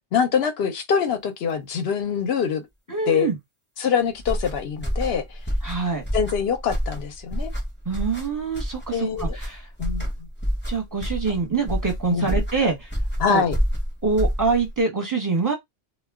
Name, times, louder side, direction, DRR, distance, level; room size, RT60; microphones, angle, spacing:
voice 1, 0.1-2.7 3.1-3.3 3.8-5.2 6.1-7.5 8.9-9.4 9.8-10.1 12.1-12.3 13.2-13.6, left 7 dB, 60° left, 0.8 m, -24 dB
voice 2, 2.9-3.4 5.6-6.0 7.8-9.7 10.7-12.9 13.3-13.4 14.0-15.6, right 4 dB, 20° right, 0.8 m, -25 dB
sound 1, 4.2-14.8, equal, 10° left, 0.7 m, -28 dB
2.2 x 2.2 x 3.4 m
omnidirectional pair, 1.3 m